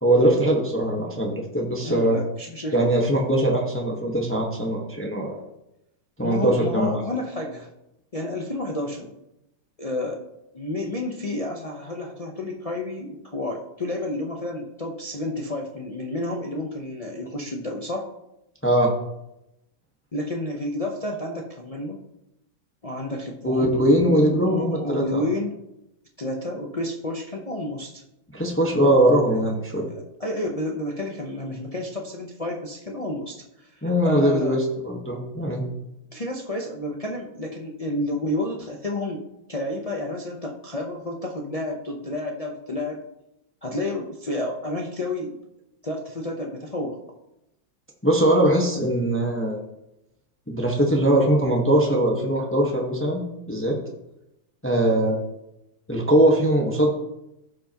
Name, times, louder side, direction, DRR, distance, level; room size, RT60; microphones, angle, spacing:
voice 1, 0.0-2.2 2.7-5.4 6.2-6.9 18.6-18.9 23.4-25.2 28.3-29.9 33.8-34.6 34.8-35.6 48.0-49.6 50.5-53.8 54.6-55.2 55.9-56.9, right 1 dB, 10° left, 0 dB, 1.0 m, -21 dB
voice 2, 1.8-2.8 6.2-7.7 8.1-9.1 9.8-10.2 10.5-18.1 20.1-22.0 22.8-23.7 24.4-25.5 26.2-28.0 30.2-34.6 36.1-39.2 39.5-43.0 43.6-45.4 45.8-47.0, left 1 dB, 65° left, 0 dB, 0.3 m, -30 dB
16.0 x 5.7 x 2.9 m, 0.88 s
omnidirectional pair, 2.0 m